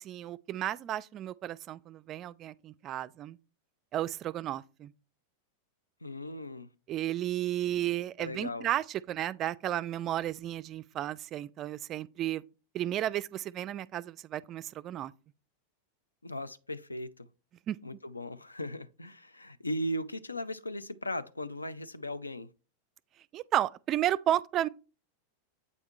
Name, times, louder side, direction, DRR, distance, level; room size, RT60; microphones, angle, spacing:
voice 1, 0.0-3.4 3.9-4.9 6.9-12.4 12.7-15.1 17.7-17.8 23.3-24.7, right 12 dB, 30° right, 0.3 m, -33 dB
voice 2, 6.0-6.7 8.2-8.7 16.2-17.3 17.8-22.5, left 1 dB, 80° left, 0.5 m, -37 dB
8.3 x 3.5 x 4.5 m
figure-of-eight pair, 90°, 0 cm